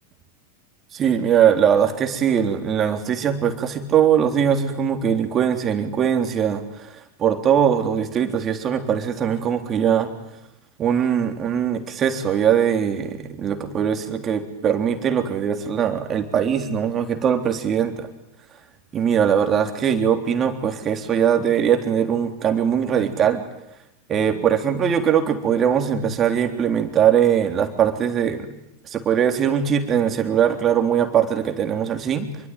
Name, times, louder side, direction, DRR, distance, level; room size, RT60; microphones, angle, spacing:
voice 1, 0.9-6.9 7.2-10.1 10.8-18.1 18.9-23.4 24.1-28.5 28.9-32.3, right 8 dB, 25° right, 6 dB, 3.6 m, -21 dB
26.0 x 23.5 x 9.4 m, 0.87 s
figure-of-eight pair, 90°, 0 cm